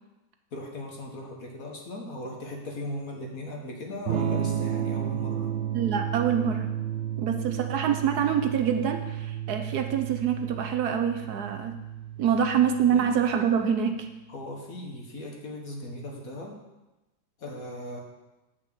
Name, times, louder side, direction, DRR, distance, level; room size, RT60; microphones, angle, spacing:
voice 1, 0.5-5.6 12.9-13.1 14.3-16.6 17.4-18.0, left 1 dB, 55° left, 1 dB, 1.9 m, -38 dB
Electric guitar / Strum, 4.1-13.8, right 10 dB, 85° right, 0.6 m, -32 dB
voice 2, 5.7-6.7 7.2-11.8 12.2-14.1, right 8 dB, 70° right, 6 dB, 1.2 m, -26 dB
8.9 x 6.0 x 6.8 m, 1.0 s
omnidirectional pair, 1.9 m